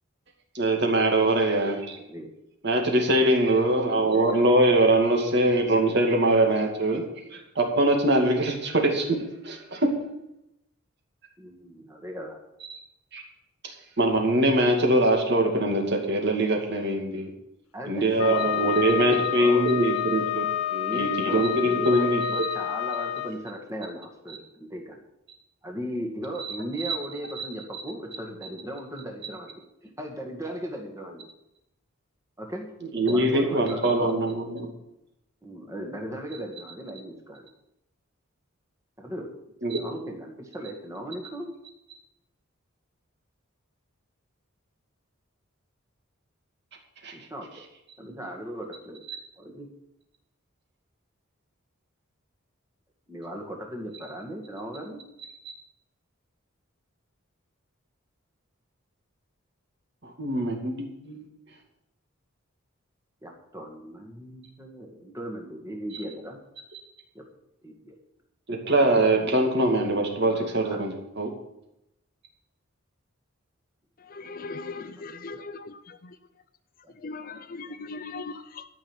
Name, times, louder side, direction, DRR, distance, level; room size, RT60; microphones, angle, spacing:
voice 1, 0.5-2.0 2.6-7.0 7.3-9.2 9.4-9.9 12.7-12.8 13.1-13.2 13.6-17.3 17.9-20.5 20.9-22.5 26.8-27.0 27.4-27.5 27.7-27.8 32.9-34.7 39.6-39.8 47.0-47.1 60.0-60.7 61.0-61.2 68.5-71.3, right 1 dB, 50° right, 2.4 m, -23 dB
voice 2, 4.0-4.4 5.6-5.9 11.4-12.4 17.7-18.8 19.1-19.7 20.7-25.0 25.6-31.2 32.4-32.7 33.1-34.2 35.4-37.5 39.0-39.3 39.6-41.5 47.1-47.6 48.0-49.0 49.4-49.7 53.1-55.0 63.2-66.4 67.1-67.2 67.6-67.9 69.0-69.3 70.2-70.8 74.4-75.1 76.8-76.9, equal, 15° right, 1.9 m, -37 dB
Wind instrument woodwind instrument, 18.2-23.3, left 9 dB, 85° left, 0.8 m, -29 dB
voice 3, 74.1-76.0 77.0-78.7, left 3 dB, 40° left, 0.6 m, -38 dB
13.0 x 6.2 x 8.9 m
head